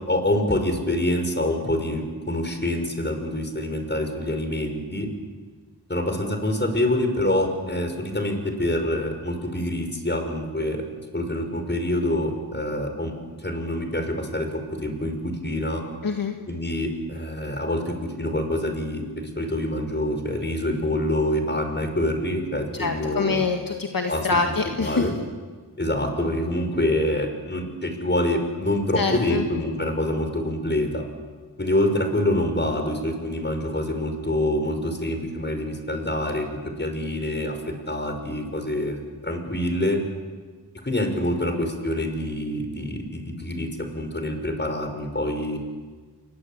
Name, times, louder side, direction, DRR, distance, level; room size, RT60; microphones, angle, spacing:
voice 1, 0.1-5.1 5.9-10.8 11.1-13.1 13.4-15.8 16.5-23.4 24.1-25.1 25.8-31.0 31.6-37.6 37.9-39.0 39.2-40.0 40.8-43.7 43.9-45.6, left 1 dB, 25° left, 5 dB, 5.7 m, -26 dB
voice 2, 16.0-16.3 22.7-25.1 29.0-29.4, left 4 dB, 55° left, 4 dB, 1.9 m, -25 dB
29.0 x 23.0 x 8.9 m, 1.4 s
wide cardioid pair, 70°, 40 cm